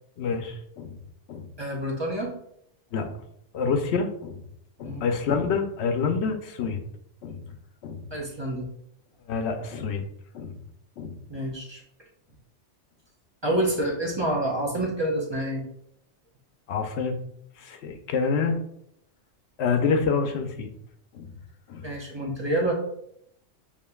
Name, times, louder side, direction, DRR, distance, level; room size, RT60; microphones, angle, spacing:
voice 1, 0.2-1.0 1.3-1.5 2.9-3.2 3.5-4.4 4.8-6.8 7.2-7.4 7.8-8.0 9.3-10.0 10.3-10.5 11.0-11.2 16.7-17.2 17.6-18.6 19.6-20.7 21.1-21.3 21.7-21.9, left 5 dB, 70° left, 6 dB, 0.8 m, -27 dB
voice 2, 1.6-2.4 4.8-5.1 8.1-8.7 11.3-11.8 13.4-15.7 21.8-22.7, right 1 dB, 25° right, -3 dB, 0.7 m, -28 dB
7.1 x 2.5 x 2.3 m, 0.73 s
omnidirectional pair, 1.2 m